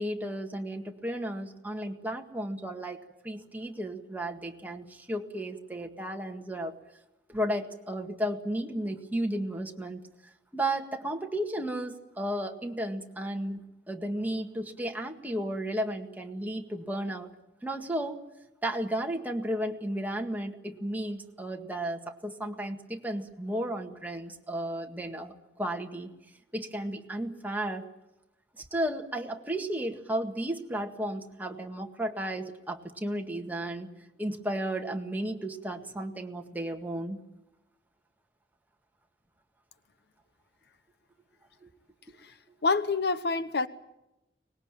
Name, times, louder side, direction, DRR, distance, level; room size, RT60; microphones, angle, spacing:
voice 1, 0.0-6.8 7.3-10.0 10.5-13.6 13.9-17.3 17.6-18.2 18.6-26.2 26.5-27.9 28.6-33.9 34.2-37.2 41.6-41.7, right 1 dB, 10° right, 1.9 m, -33 dB
voice 2, 42.6-43.7, left 4 dB, 65° left, 0.9 m, -27 dB
24.0 x 20.5 x 9.0 m
head